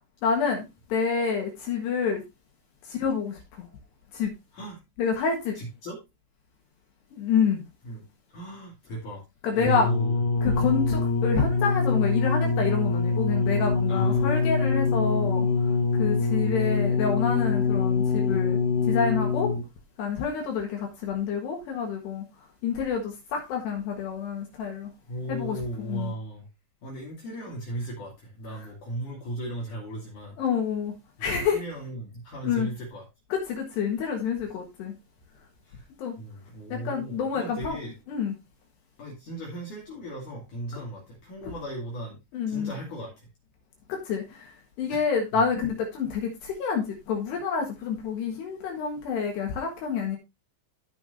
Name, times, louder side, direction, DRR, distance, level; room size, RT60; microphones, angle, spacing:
voice 1, 0.2-2.2 2.9-3.7 4.1-4.3 5.0-5.6 7.1-7.6 9.4-9.9 10.4-15.5 16.0-18.6 18.9-19.5 20.0-22.2 22.6-24.9 25.3-25.6 25.8-26.1 30.4-30.9 31.2-31.6 32.4-32.7 33.3-34.9 36.0-36.2 36.7-37.8 38.1-38.3 42.3-42.7 43.9-44.5 44.8-50.2, left 6 dB, 65° left, 3.3 m, -28 dB
voice 2, 5.5-6.0 7.8-8.0 8.3-9.2 9.5-10.2 13.9-14.4 25.1-26.5 26.8-30.4 31.2-33.1 35.6-35.9 36.2-37.9 39.0-42.2 42.5-43.3 44.9-45.0 45.3-45.4, right 1 dB, 50° left, 3.1 m, -36 dB
sound 1, 9.7-19.8 20.6-20.7, left 4 dB, 85° left, 1.9 m, -24 dB
14.5 x 5.8 x 2.6 m
omnidirectional pair, 5.9 m